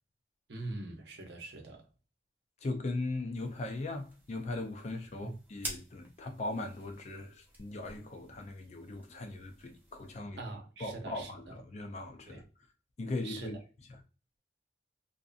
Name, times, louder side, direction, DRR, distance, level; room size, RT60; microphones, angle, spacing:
voice 1, 0.5-1.8 5.2-5.3 10.4-11.5 12.3-12.4 13.2-13.5, right 2 dB, 70° right, 0.7 m, -43 dB
voice 2, 2.6-10.4 10.8-12.4 13.0-13.6 13.9-14.0, left 2 dB, 40° left, 0.4 m, -39 dB
sound 1, 3.3-10.1, right 1 dB, 10° right, 0.6 m, -49 dB
2.6 x 2.5 x 2.4 m
head